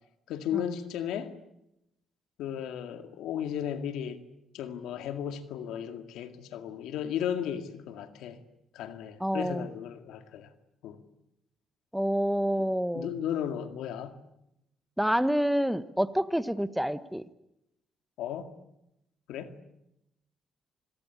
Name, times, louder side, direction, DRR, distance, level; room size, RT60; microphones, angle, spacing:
voice 1, 0.3-1.4 2.4-4.3 4.5-8.4 8.7-10.5 10.8-11.0 12.9-14.2 18.2-18.5 19.3-19.6, left 9 dB, 90° left, 2.1 m, -35 dB
voice 2, 9.2-9.6 11.9-13.1 15.0-17.2, equal, ahead, 1.1 m, -28 dB
27.0 x 21.5 x 8.4 m
cardioid pair, 90°, 0 cm